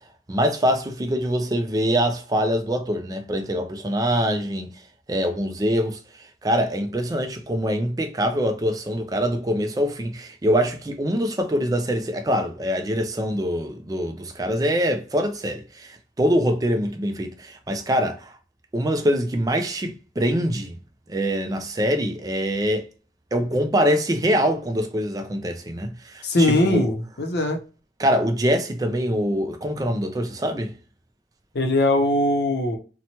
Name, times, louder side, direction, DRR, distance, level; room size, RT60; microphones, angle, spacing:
voice 1, 0.3-4.7 5.1-6.0 6.4-18.3 18.7-20.8 21.1-22.9 23.3-26.9 28.0-30.7, equal, 20° right, 0.4 m, -24 dB
voice 2, 26.2-27.6 31.5-32.8, left 1 dB, 65° left, 0.6 m, -21 dB
2.9 x 2.1 x 2.7 m
head